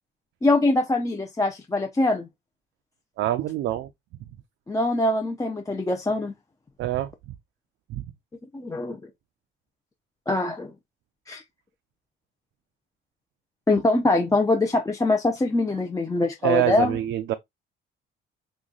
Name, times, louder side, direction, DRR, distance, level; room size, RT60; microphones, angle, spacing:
voice 1, 0.4-2.3 4.7-6.3 8.5-9.0 10.3-10.7 11.3-11.4 13.7-17.0, left 2 dB, 15° left, 0.6 m, -23 dB
voice 2, 3.2-3.9 6.8-7.1 7.9-8.0 16.4-17.3, right 14 dB, 80° right, 0.5 m, -25 dB
3.1 x 2.4 x 3.8 m
cardioid pair, 90°, 20 cm